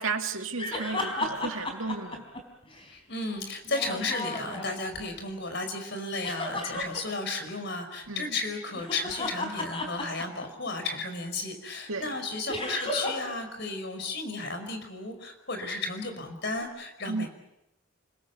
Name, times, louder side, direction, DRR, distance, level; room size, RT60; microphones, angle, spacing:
voice 1, 0.0-2.2 8.1-8.4 11.9-12.1 17.1-17.3, right 4 dB, 75° right, 2.3 m, -33 dB
sound 1, 0.6-2.9 3.7-5.0 6.2-7.0 8.7-10.7 12.5-13.3 13.6-13.7 16.6-16.7, left 2 dB, 25° left, 4.5 m, -34 dB
voice 2, 2.9-17.3, left 3 dB, 55° left, 4.9 m, -34 dB
29.0 x 21.0 x 8.3 m
head